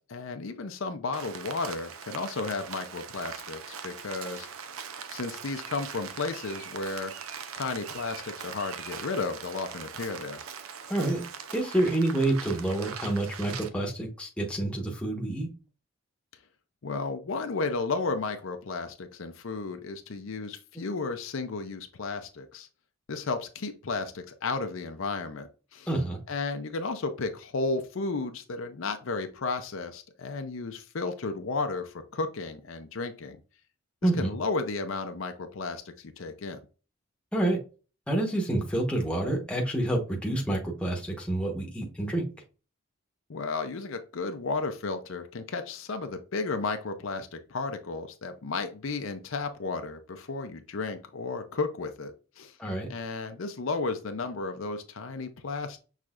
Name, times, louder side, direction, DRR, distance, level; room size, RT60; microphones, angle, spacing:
voice 1, 0.1-4.5 5.1-7.1 7.6-10.4 16.8-22.7 23.1-25.9 26.3-33.4 34.0-36.6 43.3-52.6 52.9-55.8, left 3 dB, 70° left, 7 dB, 0.6 m, -33 dB
Rain, 1.1-13.7, right 7 dB, 80° right, 0.6 m, -41 dB
voice 2, 10.9-11.2 11.5-15.5 25.9-26.2 34.0-34.3 37.3-37.6 38.1-42.2 52.6-52.9, right 1 dB, 5° left, 0 dB, 1.0 m, -28 dB
6.1 x 3.2 x 2.4 m, 0.34 s
head